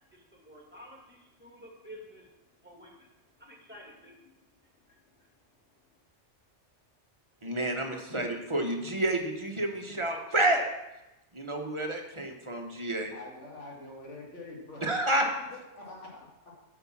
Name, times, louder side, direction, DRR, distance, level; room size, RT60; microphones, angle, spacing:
voice 1, 0.1-2.3 2.6-6.0, equal, 10° right, -2 dB, 2.4 m, -52 dB
voice 2, 7.4-10.7 11.3-13.1 14.8-15.3, right 1 dB, 25° right, 2 dB, 1.2 m, -29 dB
voice 3, 13.1-15.0 15.5-16.3, left 2 dB, 75° left, -3 dB, 2.3 m, -45 dB
8.9 x 5.9 x 7.2 m, 0.96 s
omnidirectional pair, 1.2 m